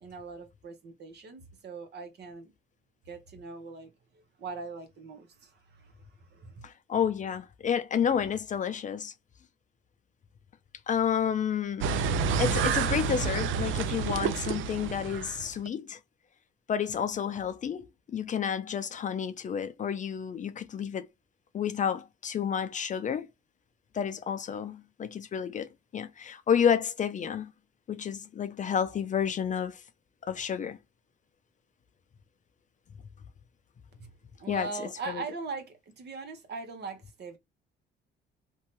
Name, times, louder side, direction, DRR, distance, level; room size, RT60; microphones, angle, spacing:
voice 1, 0.0-2.5 3.1-3.9 4.4-5.9 6.2-6.6 34.0-34.1 34.4-37.4, right 4 dB, 55° right, 0.9 m, -41 dB
voice 2, 6.6-9.1 10.9-12.0 12.4-16.0 16.7-21.1 21.5-23.3 23.9-27.5 27.9-29.8 30.2-30.8 34.5-34.7 35.1-35.2, left 8 dB, 40° left, 0.4 m, -30 dB
sound 1, 11.8-15.7, right 6 dB, 80° right, 0.4 m, -29 dB
2.7 x 2.2 x 3.0 m
cardioid pair, 90°, 20 cm